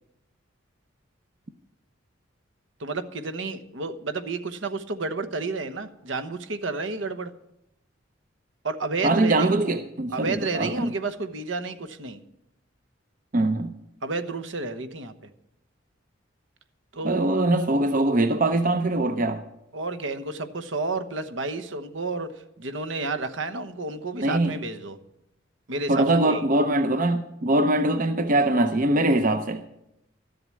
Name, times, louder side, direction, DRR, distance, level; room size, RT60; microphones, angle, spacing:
voice 1, 2.8-7.3 8.6-9.8 10.1-12.2 14.0-15.1 16.9-17.3 19.7-22.3 22.6-25.0 25.7-26.4, right 3 dB, 70° right, 1.0 m, -31 dB
voice 2, 9.0-10.9 13.3-13.7 17.0-19.4 24.2-24.5 25.9-29.6, right 2 dB, 40° right, 0.7 m, -22 dB
13.0 x 7.8 x 8.4 m
head